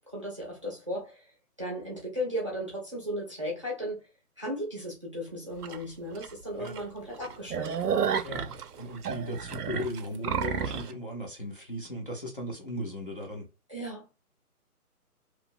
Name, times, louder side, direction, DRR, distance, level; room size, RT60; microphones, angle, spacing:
voice 1, 0.1-1.3 1.6-4.1 4.4-8.0 13.7-14.1, equal, 20° right, 0.6 m, -36 dB
sound 1, 5.6-5.8 6.2-6.3 6.6-6.8 7.1-10.9, right 7 dB, 90° right, 0.6 m, -31 dB
voice 2, 8.2-13.5, equal, 35° left, 0.5 m, -37 dB
2.8 x 2.1 x 2.4 m
hypercardioid pair, 160°, 45 cm